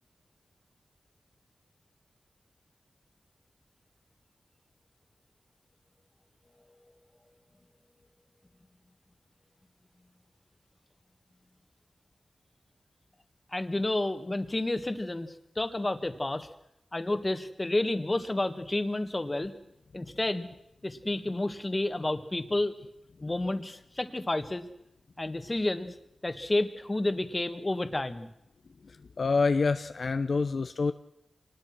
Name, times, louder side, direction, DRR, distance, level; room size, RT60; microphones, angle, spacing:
voice 1, 13.5-16.5 16.9-19.5 19.9-20.5 20.8-22.7 23.2-24.7 25.2-25.9 26.2-28.3, left 2 dB, 30° left, 9 dB, 1.9 m, -30 dB
voice 2, 28.8-30.9, left 4 dB, 70° left, 9 dB, 0.8 m, -27 dB
24.5 x 19.5 x 6.1 m, 0.82 s
cardioid pair, 55°, 0 cm